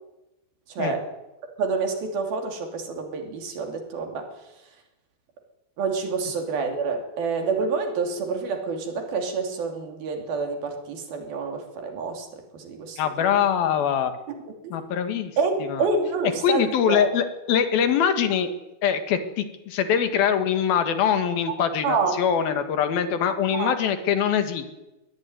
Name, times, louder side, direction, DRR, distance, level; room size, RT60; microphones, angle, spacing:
voice 1, 0.7-1.1 1.6-4.3 5.8-13.5 14.6-14.7 15.4-17.1 21.8-22.1 23.6-23.7, right 4 dB, 75° right, 4 dB, 4.8 m, -28 dB
voice 2, 13.0-14.1 14.7-15.3 15.6-15.9 16.4-18.5 18.8-24.7, left 8 dB, 75° left, 9 dB, 3.5 m, -23 dB
22.5 x 17.5 x 9.6 m, 1.0 s
omnidirectional pair, 4.4 m